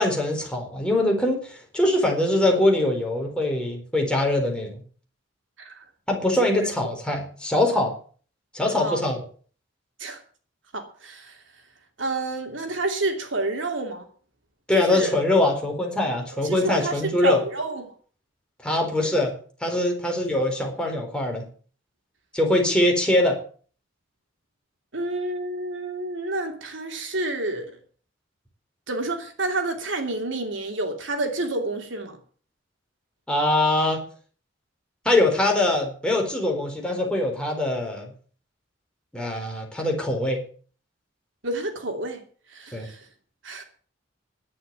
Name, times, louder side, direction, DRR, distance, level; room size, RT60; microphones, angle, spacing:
voice 1, 0.0-4.8 6.1-7.9 8.5-9.2 14.7-17.4 18.6-19.3 19.6-21.5 22.3-23.4 33.3-34.0 35.0-38.1 39.1-40.4 42.7-42.9, left 1 dB, 5° left, 4.1 m, -23 dB
voice 2, 10.7-11.4 12.0-14.1 14.7-15.2 16.3-17.9 24.9-27.7 28.9-32.2 41.4-42.2 42.5-43.1 43.4-43.6, right 2 dB, 80° right, 2.9 m, -29 dB
11.0 x 9.7 x 8.9 m
head